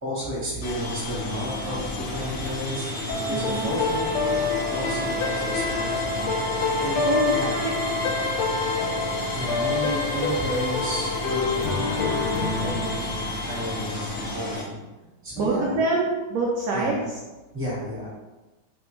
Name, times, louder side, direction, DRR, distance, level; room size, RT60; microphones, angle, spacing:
voice 1, 0.0-2.9 3.2-4.3 4.7-6.3 6.8-7.6 9.3-13.0 13.4-14.8 15.2-15.8 16.7-17.1 17.5-18.1, equal, 10° right, -7 dB, 0.9 m, -32 dB
sound 1, 0.6-14.6, left 1 dB, 55° left, 0.7 m, -32 dB
sound 2, 3.1-14.3, left 4 dB, 90° left, 1.5 m, -27 dB
voice 2, 3.3-3.7 7.1-7.7 15.4-17.0, right 3 dB, 80° right, -3 dB, 0.9 m, -25 dB
3.3 x 3.1 x 3.1 m, 1.1 s
omnidirectional pair, 2.3 m